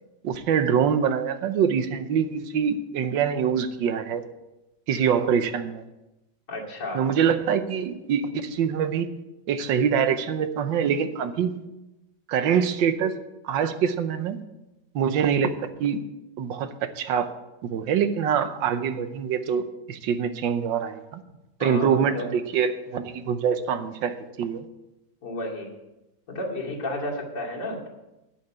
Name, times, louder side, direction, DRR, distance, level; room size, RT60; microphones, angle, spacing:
voice 1, 0.2-4.2 4.9-5.8 6.9-9.1 9.5-11.6 12.3-13.2 13.4-14.4 14.9-16.0 16.4-17.3 17.6-21.2 21.6-24.7, right 7 dB, 80° right, 10 dB, 1.5 m, -24 dB
voice 2, 6.5-7.1 21.6-22.3 25.2-25.7 26.3-27.9, left 1 dB, 65° left, -3 dB, 3.0 m, -32 dB
10.5 x 5.9 x 8.7 m, 0.97 s
omnidirectional pair, 2.0 m